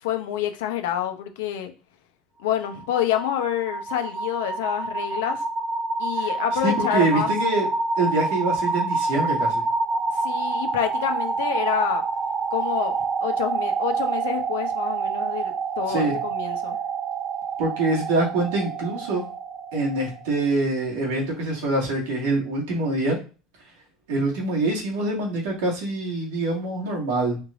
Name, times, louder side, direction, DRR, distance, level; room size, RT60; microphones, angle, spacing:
voice 1, 0.0-1.7 2.4-5.4 6.0-7.3 10.1-12.0 12.5-12.9 13.2-16.8, left 11 dB, 90° left, 6 dB, 0.8 m, -27 dB
sound 1, 2.5-20.4, right 4 dB, 25° right, 0.4 m, -27 dB
voice 2, 6.6-7.7 8.0-9.6 15.9-16.2 17.6-19.2 19.7-23.2 24.1-27.4, right 2 dB, 85° right, -2 dB, 1.9 m, -25 dB
4.4 x 3.2 x 2.6 m, 0.34 s
supercardioid pair, 135°, 0 cm